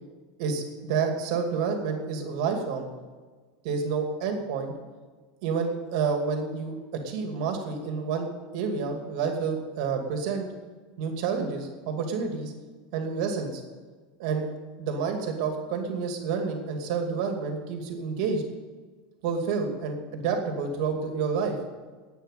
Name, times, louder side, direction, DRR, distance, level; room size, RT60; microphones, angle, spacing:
voice 1, 0.4-2.9 3.6-4.7 5.4-6.7 7.0-10.5 11.0-12.5 12.9-13.6 14.2-14.5 14.8-18.4 19.2-21.5, right 5 dB, 55° right, 4 dB, 2.5 m, -29 dB
10.5 x 9.1 x 9.3 m, 1.4 s
supercardioid pair, 170°, 4 cm